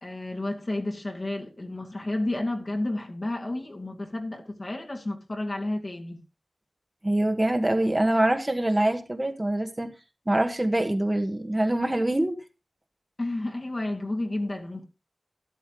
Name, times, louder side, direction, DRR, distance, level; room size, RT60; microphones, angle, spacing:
voice 1, 0.0-6.2 13.2-14.8, left 2 dB, 40° left, 2.3 m, -31 dB
voice 2, 7.0-9.9 10.3-12.4, right 1 dB, 20° right, 1.5 m, -24 dB
12.5 x 12.5 x 3.1 m
wide cardioid pair, 85°, 0 cm